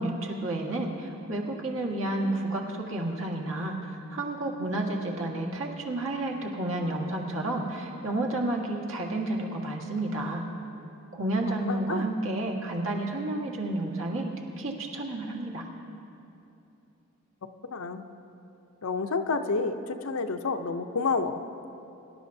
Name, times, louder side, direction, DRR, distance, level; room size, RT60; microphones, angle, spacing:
voice 1, 0.0-10.4 11.1-14.3 14.6-15.6, right 2 dB, 65° right, -1 dB, 1.6 m, -31 dB
voice 2, 11.7-12.1 17.7-18.1 18.8-21.4, left 4 dB, 75° left, 7 dB, 0.7 m, -29 dB
24.0 x 11.5 x 2.7 m, 2.8 s
head